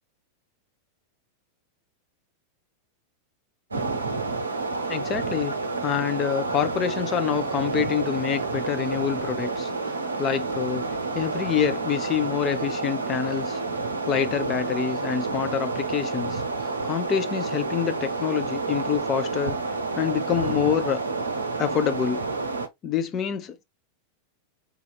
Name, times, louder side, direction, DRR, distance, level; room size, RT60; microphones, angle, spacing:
sound 1, 3.7-22.7, right 3 dB, 75° right, 0.5 m, -29 dB
voice 1, 4.9-5.5 5.8-10.9 11.1-13.6 14.1-19.6 20.0-21.0 21.6-22.2 22.8-23.6, left 8 dB, 30° left, 0.5 m, -27 dB
3.9 x 2.8 x 2.2 m
figure-of-eight pair, 90°, 0 cm